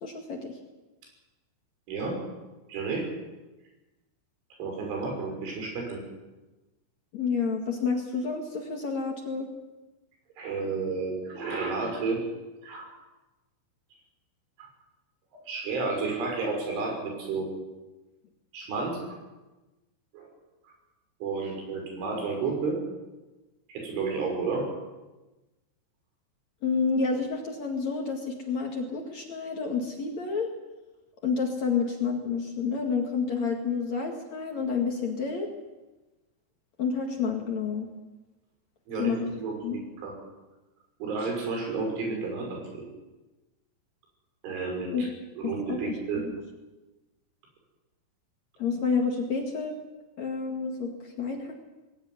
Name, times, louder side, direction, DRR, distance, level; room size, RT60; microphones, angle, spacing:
voice 1, 0.0-0.5 7.1-9.5 26.6-30.5 31.2-35.5 36.8-37.9 39.0-39.3 39.6-39.8 44.9-45.1 45.4-46.3 48.6-49.7 50.2-51.6, left 5 dB, 45° left, 2 dB, 2.6 m, -29 dB
voice 2, 1.9-2.2 2.7-3.0 4.6-6.0 10.4-12.3 12.6-12.9 14.6-14.7 15.5-17.5 18.5-19.2 20.1-20.3 20.6-20.7 21.2-22.8 23.7-24.7 38.9-40.1 41.0-42.8 44.4-45.1 45.4-46.4, right 4 dB, 90° right, 2 dB, 8.4 m, -31 dB
20.5 x 17.0 x 9.6 m, 1.1 s
omnidirectional pair, 5.4 m